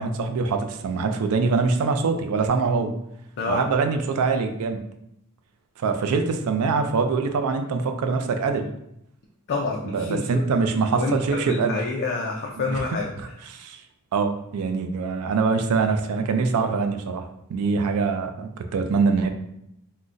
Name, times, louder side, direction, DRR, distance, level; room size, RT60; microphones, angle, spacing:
voice 1, 0.0-2.9 3.5-4.8 5.8-8.7 9.9-11.8 12.7-12.8 13.5-13.8 14.1-17.2 17.5-19.3, right 4 dB, 70° right, 6 dB, 0.3 m, -24 dB
voice 2, 9.5-10.4 11.0-13.1, left 3 dB, 50° left, -1 dB, 0.4 m, -27 dB
3.7 x 2.1 x 2.4 m, 0.78 s
head